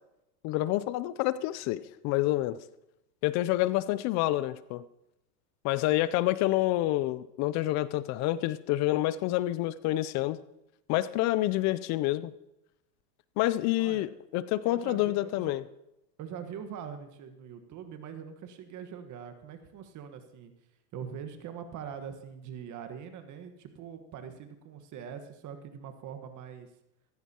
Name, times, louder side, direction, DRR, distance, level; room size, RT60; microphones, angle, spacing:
voice 1, 0.4-2.6 3.2-4.8 5.6-10.4 10.9-12.3 13.4-15.6, left 16 dB, 35° left, 16 dB, 0.5 m, -28 dB
voice 2, 14.6-15.5 16.2-20.5 20.9-26.7, right 8 dB, 35° right, 8 dB, 1.4 m, -43 dB
16.0 x 14.0 x 2.9 m, 0.87 s
hypercardioid pair, 105°, 49 cm